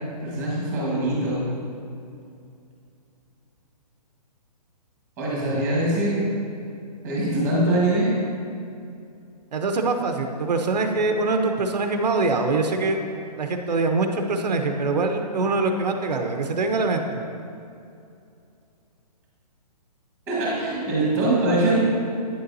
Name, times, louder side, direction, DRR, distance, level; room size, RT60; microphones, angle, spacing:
voice 1, 0.2-1.5 5.2-6.2 7.0-8.1 20.3-21.8, right 1 dB, 10° right, -6 dB, 1.4 m, -23 dB
voice 2, 9.5-13.0 13.4-17.3, right 3 dB, 85° right, 5 dB, 0.8 m, -24 dB
9.5 x 6.8 x 2.7 m, 2.5 s
hypercardioid pair, 175°, 21 cm